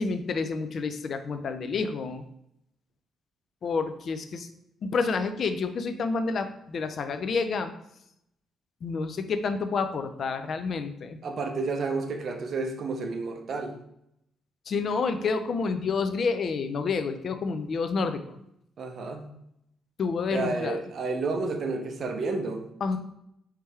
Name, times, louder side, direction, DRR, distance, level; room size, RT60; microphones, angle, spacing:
voice 1, 0.0-2.2 3.6-4.5 4.8-7.7 8.8-11.2 14.7-18.4 20.0-20.8 22.8-23.0, left 4 dB, 55° left, 9 dB, 0.4 m, -29 dB
voice 2, 11.2-13.7 18.8-19.3 20.3-22.6, right 3 dB, 55° right, 5 dB, 0.7 m, -31 dB
4.6 x 3.3 x 3.2 m, 0.78 s
cardioid pair, 90°, 0 cm